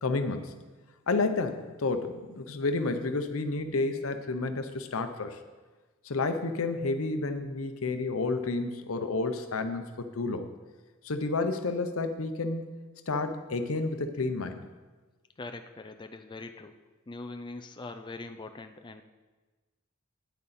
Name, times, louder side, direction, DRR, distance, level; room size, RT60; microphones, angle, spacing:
voice 1, 0.0-0.5 1.1-5.4 6.0-10.5 11.0-12.7 13.1-14.7, left 3 dB, 90° left, 8 dB, 0.8 m, -30 dB
voice 2, 15.4-16.7 17.1-19.0, left 3 dB, 20° left, 7 dB, 0.4 m, -42 dB
9.2 x 8.7 x 4.2 m, 1.3 s
head